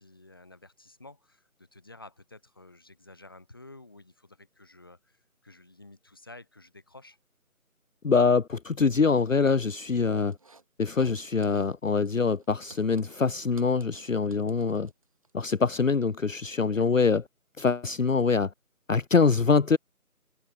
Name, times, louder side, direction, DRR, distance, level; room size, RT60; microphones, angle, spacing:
voice 1, 0.0-7.2 16.7-16.9, left 2 dB, 15° left, 2.2 m, -51 dB
voice 2, 8.0-10.4 10.8-14.9 15.3-17.2 17.6-18.5 18.9-19.8, left 5 dB, 60° left, 0.7 m, -24 dB
sound 1, 10.3-11.2 11.4-11.7 12.0-15.3, right 3 dB, 25° right, 3.6 m, -56 dB
figure-of-eight pair, 170°, 44 cm